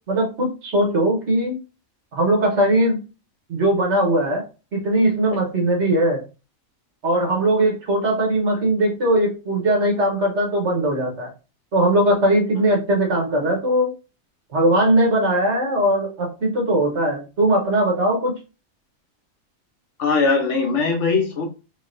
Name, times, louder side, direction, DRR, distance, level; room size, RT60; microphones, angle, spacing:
voice 1, 0.1-1.6 2.1-3.0 3.5-4.4 4.7-6.2 7.0-11.3 11.7-13.9 14.5-18.4, right 1 dB, 60° right, 1 dB, 1.4 m, -20 dB
voice 2, 20.0-21.4, left 4 dB, 65° left, 3 dB, 1.1 m, -20 dB
3.6 x 3.4 x 2.6 m, 0.31 s
omnidirectional pair, 1.4 m